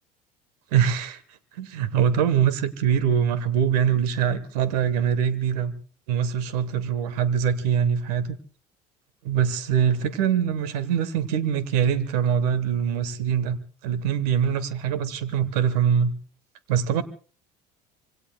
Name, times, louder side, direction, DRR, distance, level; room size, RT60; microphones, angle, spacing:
voice 1, 0.7-1.2 1.6-5.7 6.1-8.3 9.2-16.1 16.7-17.0, right 8 dB, 75° right, 1.4 m, -23 dB
26.0 x 23.5 x 2.3 m
hypercardioid pair, 65°, 20 cm